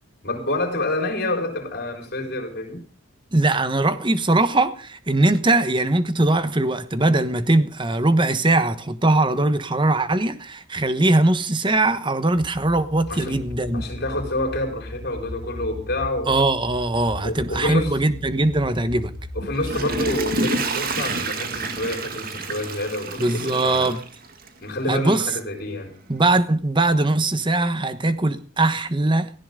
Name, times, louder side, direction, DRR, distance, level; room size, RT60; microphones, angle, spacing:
voice 1, 0.2-2.8 13.1-13.4 13.7-16.3 17.2-17.9 19.3-23.9 24.6-26.0, left 1 dB, 50° left, 4.8 m, -28 dB
voice 2, 3.3-13.9 16.3-19.1 23.2-24.0 24.9-25.3 26.1-29.3, right 2 dB, 25° right, 1.2 m, -21 dB
sound 1, 12.3-20.3, left 1 dB, 25° left, 5.8 m, -37 dB
Water / Toilet flush, 19.4-24.7 25.2-25.3, right 3 dB, 45° right, 2.2 m, -28 dB
17.5 x 15.5 x 3.8 m
head